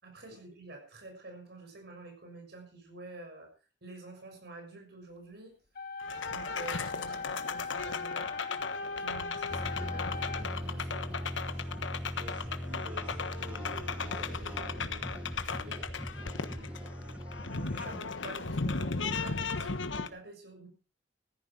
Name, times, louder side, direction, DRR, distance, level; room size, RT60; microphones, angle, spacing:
voice 1, 0.0-3.5 3.8-5.5 6.3-8.3 9.0-11.1 17.5-20.7, right 2 dB, 60° right, 3 dB, 6.6 m, -48 dB
sound 1, 5.8-10.7, left 4 dB, 55° left, 1.8 m, -39 dB
sound 2, 6.0-20.1, left 4 dB, 90° left, 1.4 m, -36 dB
sound 3, 9.5-18.0, equal, 5° right, 1.4 m, -40 dB
voice 2, 12.1-15.2 15.5-17.2, right 1 dB, 45° right, -3 dB, 5.1 m, -50 dB
15.5 x 13.5 x 4.7 m, 0.33 s
head